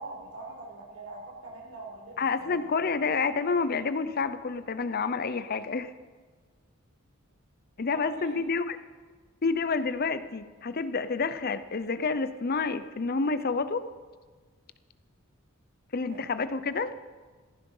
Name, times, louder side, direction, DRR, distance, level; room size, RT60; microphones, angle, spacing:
voice 1, 0.0-2.6 7.9-8.4 16.1-16.2, right 2 dB, 70° right, -1 dB, 4.7 m, -43 dB
voice 2, 2.2-5.9 7.8-8.8 9.4-13.9 15.9-16.9, left 4 dB, 45° left, 13 dB, 0.6 m, -29 dB
15.5 x 14.5 x 5.5 m, 1.4 s
head